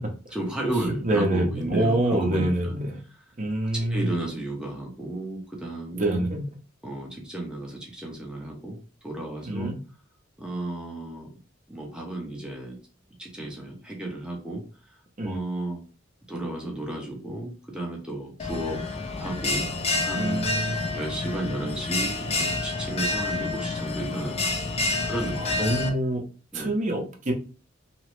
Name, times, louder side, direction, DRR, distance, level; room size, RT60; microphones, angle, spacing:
voice 1, 0.3-2.7 3.9-6.3 6.8-9.7 10.4-11.3 11.7-12.8 13.2-15.8 16.3-18.8 19.2-20.5 20.9-24.5 25.0-25.6 26.5-26.7, right 1 dB, 5° right, -1 dB, 0.7 m, -33 dB
voice 2, 1.0-3.0 3.4-4.1 6.0-6.4 9.4-9.7 15.2-15.4 20.1-20.8 24.8-25.1 25.4-26.2 26.5-27.3, right 1 dB, 40° right, 2 dB, 0.7 m, -26 dB
Bell, 18.4-25.9, left 3 dB, 30° left, 0.4 m, -28 dB
2.9 x 2.0 x 3.1 m, 0.36 s
head